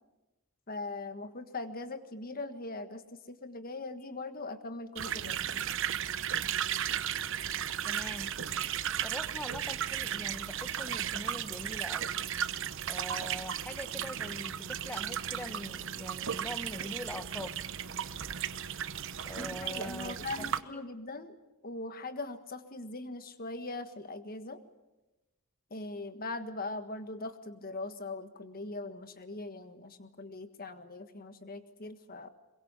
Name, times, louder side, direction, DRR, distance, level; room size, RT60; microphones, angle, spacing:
voice 1, 0.7-5.7 19.4-21.4 21.6-24.6 25.7-32.3, left 2 dB, 40° left, 9 dB, 1.5 m, -41 dB
sound 1, 4.9-20.6, right 9 dB, 60° right, 0.9 m, -35 dB
voice 2, 7.9-8.3 9.0-12.1 12.9-17.6 19.3-20.8, left 1 dB, 5° left, 10 dB, 1.1 m, -43 dB
23.0 x 22.0 x 8.2 m, 1.1 s
head